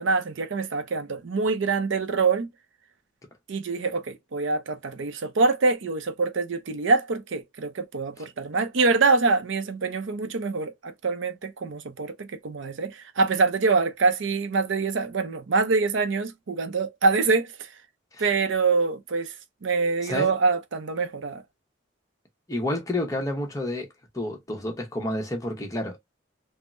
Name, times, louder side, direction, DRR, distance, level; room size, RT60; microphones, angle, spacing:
voice 1, 0.0-2.5 3.5-17.7 18.2-19.3 19.6-21.4, right 4 dB, 70° right, 0.5 m, -25 dB
voice 2, 20.0-20.3 22.5-23.9 24.1-26.0, left 1 dB, 15° left, 0.8 m, -29 dB
3.6 x 2.0 x 2.5 m
head